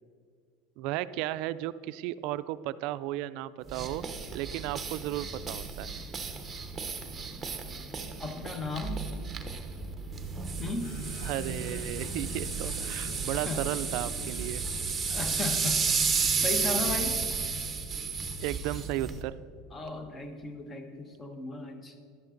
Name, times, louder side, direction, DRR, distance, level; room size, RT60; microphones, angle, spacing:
voice 1, 0.8-4.1 4.3-5.9 11.2-14.6 18.4-19.3, right 14 dB, 60° right, 15 dB, 0.4 m, -34 dB
sound 1, 3.7-19.2, right 5 dB, 15° right, 1.0 m, -33 dB
voice 2, 8.2-9.1 10.6-11.0 13.5-13.7 15.1-16.0 16.4-17.2 19.7-22.1, left 3 dB, 20° left, 6 dB, 1.1 m, -36 dB
sound 2, 10.8-17.1, left 3 dB, 70° left, 1.6 m, -49 dB
11.5 x 9.5 x 3.9 m, 2.3 s
supercardioid pair, 130°, 0 cm